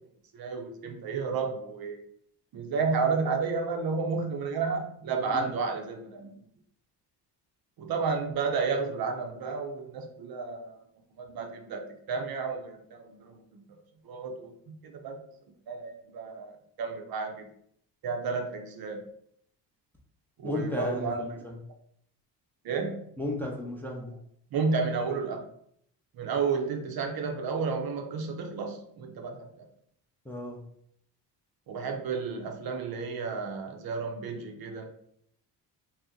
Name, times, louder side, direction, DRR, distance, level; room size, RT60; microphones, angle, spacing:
voice 1, 0.3-2.0 2.5-6.4 7.8-10.8 11.1-11.8 12.1-13.6 14.0-15.2 15.7-17.5 18.0-19.0 20.4-21.4 22.6-23.0 24.5-25.4 26.1-29.5 31.7-34.9, right 4 dB, 55° right, 4 dB, 0.6 m, -32 dB
voice 2, 20.4-21.1 23.2-24.1 30.3-30.6, left 1 dB, 5° left, -1 dB, 0.4 m, -33 dB
2.7 x 2.0 x 3.6 m, 0.69 s
cardioid pair, 90°, 43 cm